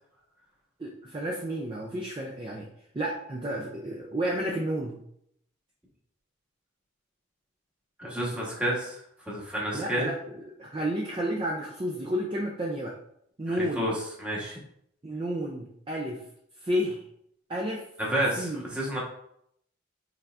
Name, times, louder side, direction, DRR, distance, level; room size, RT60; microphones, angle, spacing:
voice 1, 0.8-2.7 2.9-5.0 9.7-13.0 13.4-13.9 15.0-16.2 16.6-17.0 17.5-17.9 18.4-18.7, equal, 25° right, -1 dB, 0.4 m, -31 dB
voice 2, 8.0-9.0 9.3-10.1 13.5-13.9 14.2-14.6 18.0-19.0, right 1 dB, 5° right, -4 dB, 1.1 m, -30 dB
5.6 x 3.4 x 2.5 m, 0.72 s
head